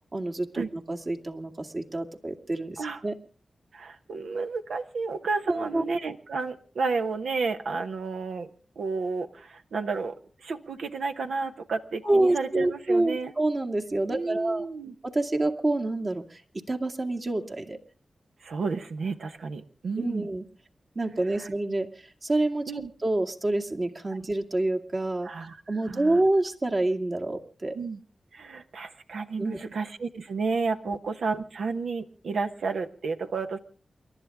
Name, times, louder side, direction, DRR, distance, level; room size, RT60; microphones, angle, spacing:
voice 1, 0.1-3.2 5.5-5.8 12.0-14.6 15.0-17.8 20.0-20.5 21.0-25.3 25.7-27.8 29.4-29.7 30.9-31.0, right 2 dB, 45° right, 3 dB, 2.2 m, -27 dB
voice 2, 3.7-8.5 8.8-13.3 14.1-14.9 18.4-20.3 21.4-21.5 22.7-22.9 25.2-25.6 25.9-26.2 27.7-28.0 28.3-33.6, right 4 dB, 85° right, 7 dB, 1.1 m, -31 dB
29.0 x 12.0 x 3.6 m, 0.39 s
cardioid pair, 40°, 0 cm